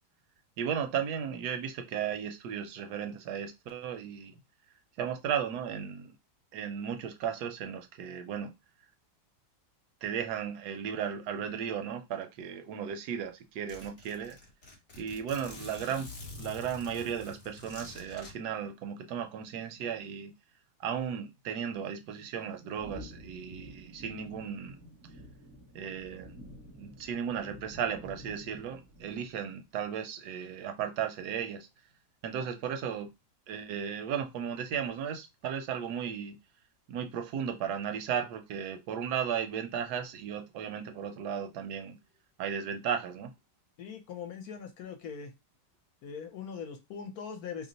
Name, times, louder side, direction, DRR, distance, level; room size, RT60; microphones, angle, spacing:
voice 1, 0.6-4.4 5.0-6.1 6.5-8.5 10.0-14.4 15.0-16.1 16.4-20.3 20.8-24.8 25.0-25.1 25.7-26.3 26.8-31.7 32.2-33.1 33.5-36.4 36.9-42.0 42.4-43.3, right 8 dB, 75° right, 1.1 m, -35 dB
Zipper (clothing), 12.9-13.0 13.2-13.3 13.7-18.3, left 2 dB, 40° left, 1.0 m, -47 dB
sound 1, 22.8-29.5, equal, 20° right, 0.5 m, -50 dB
voice 2, 43.8-45.3 46.0-47.7, left 6 dB, 70° left, 1.0 m, -41 dB
2.9 x 2.1 x 3.8 m
omnidirectional pair, 1.8 m